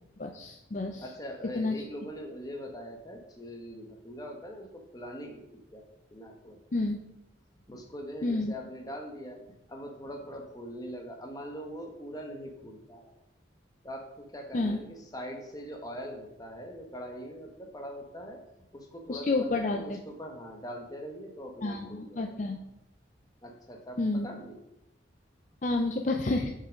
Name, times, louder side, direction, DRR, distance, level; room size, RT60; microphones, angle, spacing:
voice 1, 0.2-1.0 1.5-1.8 6.7-7.0 8.2-8.5 14.5-14.8 19.1-20.0 21.6-22.6 24.0-24.3 25.6-26.5, left 2 dB, 40° left, 3 dB, 0.5 m, -29 dB
voice 2, 1.0-5.4 5.7-6.6 7.7-9.4 9.7-13.1 13.8-18.4 18.7-22.5 23.4-24.6, equal, 20° left, 2 dB, 1.1 m, -42 dB
6.8 x 5.6 x 5.1 m, 0.87 s
head